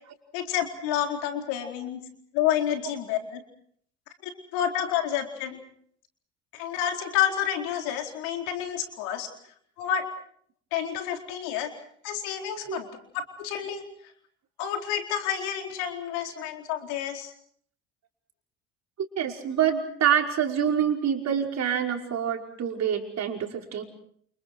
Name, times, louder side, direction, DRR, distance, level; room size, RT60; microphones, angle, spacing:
voice 1, 0.3-2.0 2.3-3.4 4.5-5.6 6.5-9.3 9.8-10.1 10.7-11.7 12.0-13.8 14.6-17.3, left 10 dB, 70° left, 4 dB, 4.4 m, -29 dB
voice 2, 19.2-23.8, right 8 dB, 45° right, 2 dB, 5.5 m, -26 dB
29.5 x 29.5 x 4.6 m, 0.62 s
hypercardioid pair, 70°, 36 cm